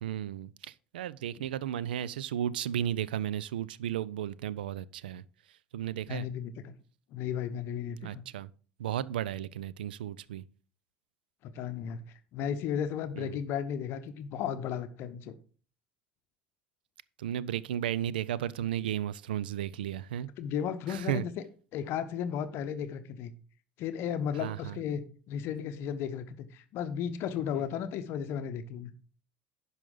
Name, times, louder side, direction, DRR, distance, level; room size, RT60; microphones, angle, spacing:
voice 1, 0.0-5.2 5.7-6.3 8.0-8.5 8.8-10.4 13.2-13.4 17.2-20.3 20.9-21.3 24.4-24.8, right 11 dB, 70° right, 0.4 m, -34 dB
voice 2, 6.1-6.7 7.1-8.2 11.4-12.0 12.3-15.3 20.4-21.4 21.7-23.3 23.8-28.9, left 8 dB, 50° left, 0.7 m, -34 dB
10.5 x 5.7 x 3.8 m
figure-of-eight pair, 65°, 5 cm